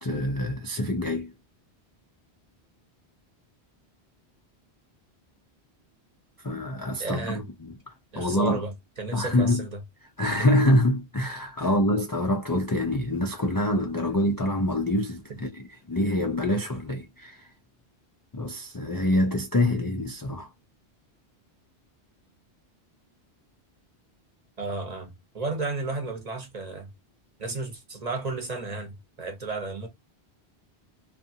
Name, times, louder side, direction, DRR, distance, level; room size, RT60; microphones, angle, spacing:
voice 1, 0.0-1.3 6.4-7.7 8.2-8.6 9.1-9.6 10.2-15.6 15.9-17.5 18.3-20.5, left 1 dB, 35° left, 0.3 m, -25 dB
voice 2, 7.0-7.5 8.1-9.8 10.2-10.5 11.6-11.7 24.6-26.9 27.4-29.9, right 3 dB, 40° right, 0.9 m, -33 dB
2.6 x 2.3 x 2.6 m
omnidirectional pair, 1.1 m